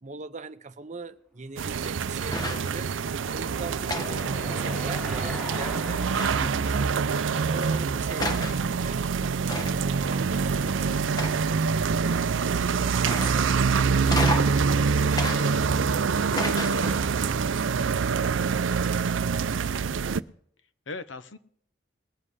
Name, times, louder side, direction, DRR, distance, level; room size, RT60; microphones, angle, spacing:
voice 1, 0.0-2.9 3.3-6.1 6.5-6.9 7.5-9.1 9.5-12.3 12.6-15.6 16.1-19.7, right 3 dB, 40° right, 0.8 m, -42 dB
sound 1, 1.6-20.2, right 5 dB, 80° right, 0.5 m, -25 dB
sound 2, 2.3-2.8 3.9-5.0 6.2-6.7 7.6-7.7 8.2-8.6 9.5-9.9 11.2-11.7 13.0-13.6 14.1-14.6 15.2-15.9 16.4-17.1, left 1 dB, 20° left, 1.0 m, -32 dB
Car passing by / Engine, 2.5-8.8, right 1 dB, 5° left, 2.8 m, -41 dB
voice 2, 6.4-6.8 20.9-21.4, left 3 dB, 70° left, 1.0 m, -39 dB
21.0 x 7.7 x 4.8 m
head